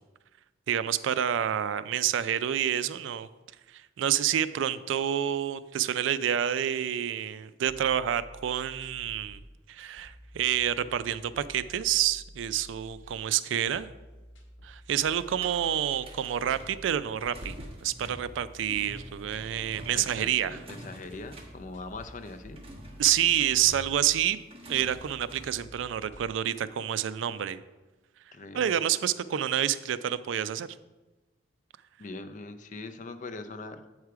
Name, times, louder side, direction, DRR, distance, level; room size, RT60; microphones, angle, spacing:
voice 1, 0.7-3.3 3.7-9.4 9.7-13.9 14.6-17.6 17.8-20.6 23.0-24.4 24.7-27.6 28.5-30.7, right 10 dB, 75° right, 15 dB, 0.3 m, -28 dB
sound 1, 7.6-26.3, equal, 70° left, 1.3 m, -51 dB
sound 2, 15.2-25.6, equal, 30° right, 1.2 m, -47 dB
voice 2, 19.9-22.6 28.3-28.7 32.0-33.8, left 3 dB, 40° left, 9 dB, 0.5 m, -41 dB
8.1 x 4.8 x 4.7 m, 1.2 s
head